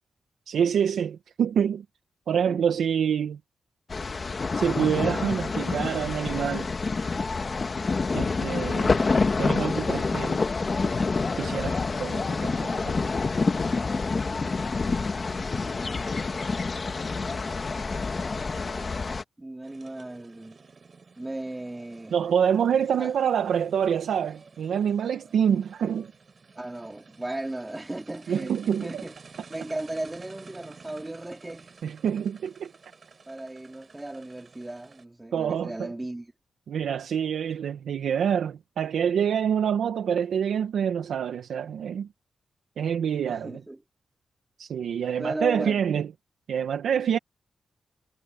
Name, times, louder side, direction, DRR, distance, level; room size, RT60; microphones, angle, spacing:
voice 1, 0.5-1.8 2.3-3.4 4.6-6.7 8.1-9.1 9.4-10.4 11.4-13.0 22.1-26.1 28.3-29.0 31.8-32.7 35.3-35.9 36.7-42.1 42.8-43.6 44.6-46.1 46.5-47.2, right 8 dB, 85° right, 1.0 m, -26 dB
sound 1, 3.9-19.2, left 4 dB, 35° left, 1.3 m, -27 dB
voice 2, 14.4-16.0 18.3-18.9 19.4-20.6 21.2-22.1 22.9-23.1 26.5-29.1 29.5-31.7 33.3-36.3 43.3-43.8 45.2-45.9, right 2 dB, 15° right, 3.2 m, -37 dB
sound 2, 19.6-35.0, right 4 dB, 40° right, 6.7 m, -52 dB
wide cardioid pair, 135°, 0 cm